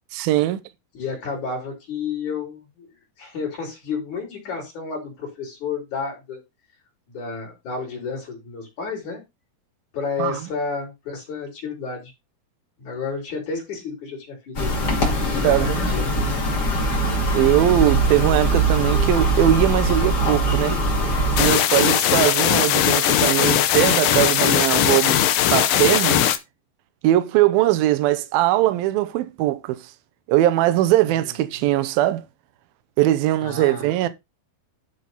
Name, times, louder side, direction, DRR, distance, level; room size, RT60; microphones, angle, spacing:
voice 1, 0.1-0.6 10.2-10.4 15.4-15.9 17.3-20.8 21.4-25.2 25.5-26.3 27.0-29.9 30.3-32.2 33.0-34.1, right 14 dB, 80° right, 2.5 m, -20 dB
voice 2, 0.9-6.4 7.1-9.2 9.9-12.1 12.8-15.1 15.4-16.5 31.1-31.7 33.4-34.0, left 5 dB, 50° left, 4.4 m, -31 dB
sound 1, 14.5-21.5, right 1 dB, 30° left, 2.2 m, -21 dB
sound 2, 21.4-26.4, left 11 dB, 75° left, 2.4 m, -19 dB
11.5 x 4.1 x 5.3 m
omnidirectional pair, 4.4 m